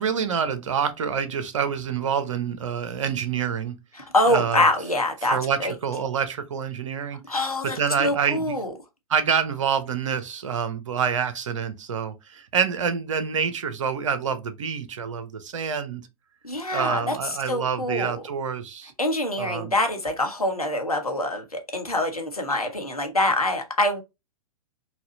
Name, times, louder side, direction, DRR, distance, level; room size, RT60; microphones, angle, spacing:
voice 1, 0.0-3.8 4.3-4.7 5.2-7.2 7.6-8.6 9.1-16.1 16.7-18.9 19.4-19.7, right 7 dB, 60° right, 0.7 m, -27 dB
voice 2, 3.9-5.7 7.2-8.7 16.4-18.2 19.0-24.0, left 1 dB, 90° left, 1.1 m, -25 dB
4.2 x 2.3 x 2.7 m
figure-of-eight pair, 110°, 18 cm